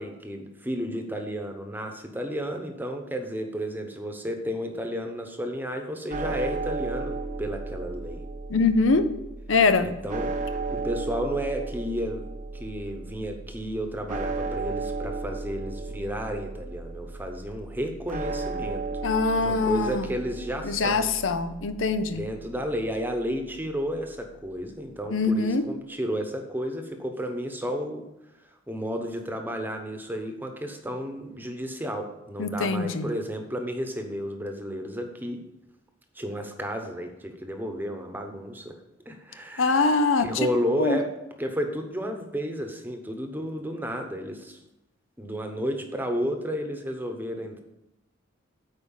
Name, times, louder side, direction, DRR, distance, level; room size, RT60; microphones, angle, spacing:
voice 1, 0.0-8.2 9.8-12.2 12.5-18.9 19.4-21.1 22.1-28.1 28.7-35.4 36.1-38.8 39.1-44.6 45.2-47.6, equal, 10° right, 5 dB, 0.9 m, -32 dB
sound 1, 6.1-24.3, right 3 dB, 40° right, 0.7 m, -35 dB
voice 2, 8.5-9.1 9.5-10.0 19.0-20.1 20.6-22.2 25.1-25.7 32.4-33.1 39.6-40.5 40.8-41.0, left 3 dB, 90° left, 10 dB, 0.7 m, -23 dB
8.6 x 4.9 x 7.2 m, 0.91 s
head